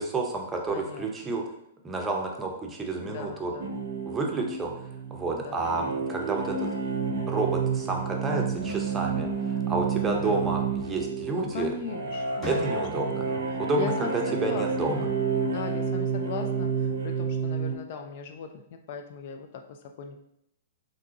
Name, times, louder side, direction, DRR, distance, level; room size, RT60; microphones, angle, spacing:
voice 1, 0.0-1.4 1.8-3.5 4.1-4.8 5.1-6.7 7.3-11.7 12.5-13.3 13.6-14.1 14.4-15.1, right 3 dB, 15° right, 1 dB, 0.6 m, -30 dB
voice 2, 0.7-1.3 3.0-3.8 5.3-5.7 8.3-8.7 10.1-10.5 11.3-12.7 13.1-13.4 13.8-15.2 15.4-20.2, left 6 dB, 50° left, 5 dB, 0.4 m, -39 dB
sound 1, 3.6-17.7, right 5 dB, 65° right, 0.6 m, -30 dB
sound 2, 8.5-10.0 11.4-11.7 12.1-13.2, left 2 dB, 15° left, 1.1 m, -44 dB
3.5 x 2.7 x 2.8 m, 0.76 s
hypercardioid pair, 115°, 0 cm